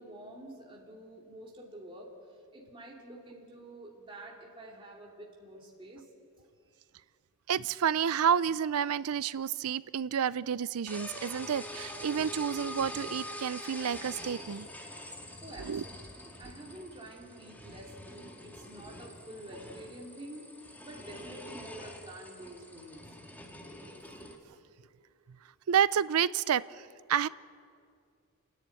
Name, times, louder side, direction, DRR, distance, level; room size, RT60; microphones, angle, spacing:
voice 1, 0.0-2.2 2.5-6.1 6.4-6.5 15.4-20.5 20.8-23.1, right 1 dB, 25° right, -2 dB, 2.6 m, -48 dB
voice 2, 7.5-14.7 15.6-15.8 25.7-27.3, right 8 dB, 80° right, 18 dB, 0.4 m, -30 dB
sound 1, 10.9-24.3, left 1 dB, 10° left, 1.9 m, -45 dB
28.5 x 10.5 x 9.1 m, 2.3 s
head